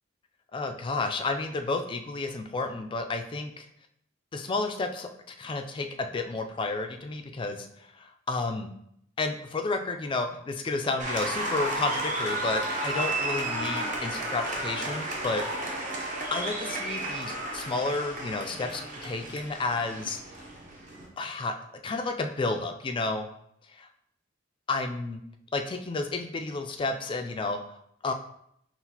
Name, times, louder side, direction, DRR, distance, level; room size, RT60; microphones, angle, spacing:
voice 1, 0.5-3.5 4.3-7.7 8.0-8.7 9.2-15.4 16.3-20.2 21.2-21.5 21.8-23.3 24.7-25.2 25.5-27.6 28.0-28.1, left 3 dB, 25° left, 6 dB, 0.3 m, -31 dB
Applause, 11.0-21.1, right 1 dB, 40° right, 0.8 m, -33 dB
5.7 x 2.4 x 2.8 m, 0.73 s
head